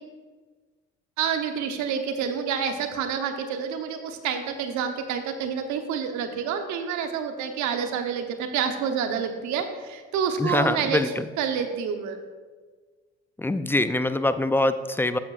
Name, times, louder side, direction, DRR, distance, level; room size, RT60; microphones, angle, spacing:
voice 1, 1.2-11.0 11.4-12.2, right 7 dB, 75° right, 6 dB, 1.0 m, -28 dB
voice 2, 10.4-11.2 13.4-15.2, left 2 dB, 10° left, 12 dB, 0.4 m, -24 dB
12.0 x 7.2 x 2.5 m, 1.4 s
supercardioid pair, 70°, 30 cm